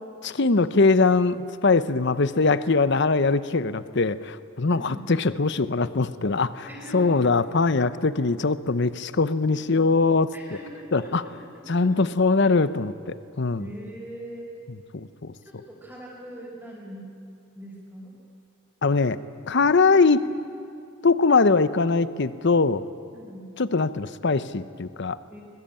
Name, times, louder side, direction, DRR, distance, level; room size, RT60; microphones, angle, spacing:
voice 1, 0.2-6.6 6.9-10.3 10.9-11.2 11.7-13.6 14.9-15.3 18.8-19.2 19.5-20.3 21.0-22.8 23.6-25.4, left 4 dB, 55° left, 14 dB, 0.8 m, -22 dB
voice 2, 4.7-5.0 6.6-7.4 9.4-12.0 13.6-14.5 15.4-17.1 17.5-18.2 23.1-23.5 25.3-25.4, right 1 dB, 5° right, -6 dB, 5.1 m, -42 dB
26.0 x 21.5 x 8.9 m, 2.6 s
head